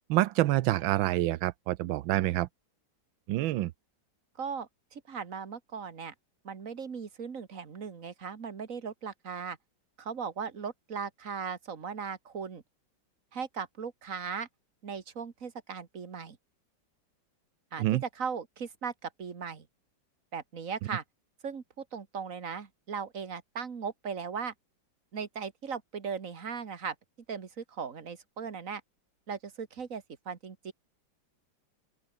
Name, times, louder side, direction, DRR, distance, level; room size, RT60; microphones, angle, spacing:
voice 1, 0.1-2.5 3.3-3.7 17.8-18.0, right 15 dB, 85° right, 1.4 m, -27 dB
voice 2, 4.4-6.1 6.4-9.6 10.0-12.6 13.3-14.5 14.8-16.4 17.7-19.7 20.3-21.0 21.4-24.5 25.1-27.0 27.3-28.8 29.3-30.7, right 6 dB, 45° right, 2.1 m, -38 dB
open air
omnidirectional pair, 2.1 m